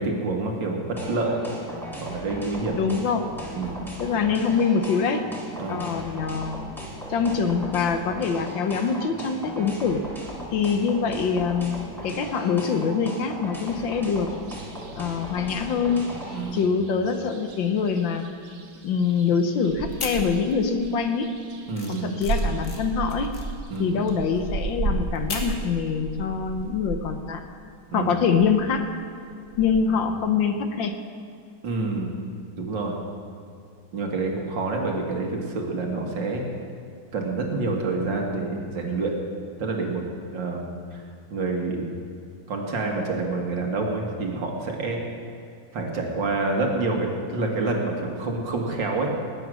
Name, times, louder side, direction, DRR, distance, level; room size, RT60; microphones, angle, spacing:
voice 1, 0.0-1.7 2.0-2.8 3.5-3.7 5.6-5.8 16.3-16.6 21.7-22.1 23.7-24.0 27.9-28.1 29.9-30.0 31.6-32.1 32.5-33.0 33.9-36.4 37.1-39.2 39.6-40.0 40.3-41.0 41.3-41.9 42.5-45.0 45.7-49.1, right 3 dB, 65° right, 1 dB, 2.4 m, -27 dB
sound 1, 1.0-16.4, equal, ahead, 2.8 m, -37 dB
voice 2, 2.7-3.2 4.0-5.2 5.7-6.5 7.1-10.0 10.5-14.3 14.9-16.0 16.5-18.3 18.8-21.3 21.9-23.3 23.8-27.4 27.9-28.9 29.6-30.9, left 6 dB, 70° left, 7 dB, 1.6 m, -24 dB
sound 2, 14.3-27.4 27.8-27.9 28.2-29.8, right 3 dB, 45° right, 1.3 m, -34 dB
sound 3, 19.9-20.8 21.1-25.6, left 4 dB, 50° left, 2.0 m, -37 dB
19.0 x 9.1 x 6.3 m, 2.4 s
omnidirectional pair, 2.3 m